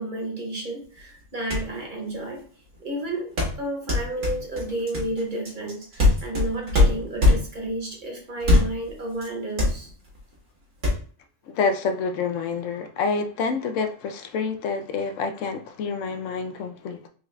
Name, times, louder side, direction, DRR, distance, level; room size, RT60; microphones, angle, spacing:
voice 1, 0.0-2.4 2.8-9.9, right 1 dB, 45° right, 1.0 m, -31 dB
sound 1, 1.2-1.3 1.5-1.8 3.4-7.7 8.4-8.9 9.2-9.3 9.6-10.2 10.8-10.9, left 2 dB, 80° right, 1.7 m, -21 dB
voice 2, 11.5-17.1, left 5 dB, 75° left, 0.9 m, -27 dB
4.6 x 2.4 x 3.1 m
omnidirectional pair, 1.3 m